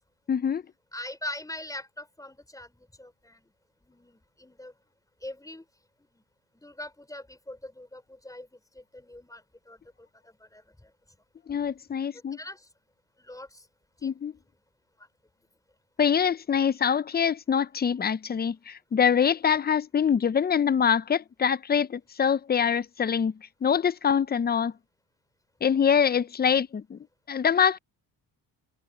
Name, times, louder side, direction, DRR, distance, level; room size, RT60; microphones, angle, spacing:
voice 1, 0.3-0.6 11.5-12.4 14.0-14.3 16.0-23.3 23.6-24.7 25.6-27.0 27.3-27.8, left 7 dB, 25° left, 0.6 m, -24 dB
voice 2, 0.9-3.5 3.8-4.7 5.2-5.6 6.1-6.2 6.5-9.8 10.2-10.9 12.3-12.6 13.2-13.6 14.0-14.1, left 1 dB, 10° left, 4.6 m, -42 dB
cardioid pair, 90°, 40 cm